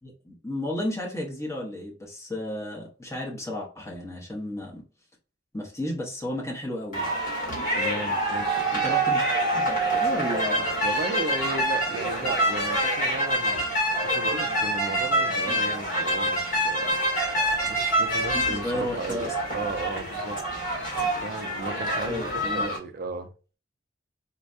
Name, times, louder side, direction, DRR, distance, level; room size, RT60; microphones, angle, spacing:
voice 1, 0.0-4.8 5.5-7.1 8.7-9.2 9.5-10.7 15.5-15.6 18.3-19.3 20.9-21.3 22.0-22.7, left 1 dB, 15° left, 1.0 m, -33 dB
sound 1, 6.9-22.8, right 1 dB, 40° left, 1.5 m, -26 dB
voice 2, 7.8-8.7 10.8-13.6 14.0-17.0 17.7-20.4 21.2-23.3, right 3 dB, 50° right, 0.5 m, -35 dB
4.2 x 2.2 x 2.5 m
head